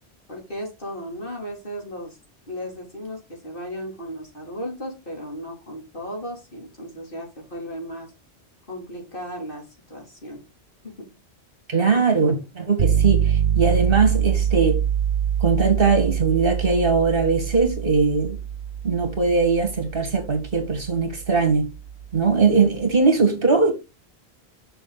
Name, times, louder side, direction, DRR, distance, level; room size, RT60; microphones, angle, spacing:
voice 1, 0.3-2.2 2.5-8.1 8.7-10.4 10.8-11.2, equal, 55° left, 3.7 m, -35 dB
voice 2, 11.7-14.8 15.4-18.4 18.8-21.7 22.1-23.7, right 4 dB, 55° right, 2.2 m, -20 dB
sound 1, 12.8-22.7, right 8 dB, 80° right, 1.2 m, -25 dB
6.9 x 6.1 x 4.0 m
omnidirectional pair, 1.1 m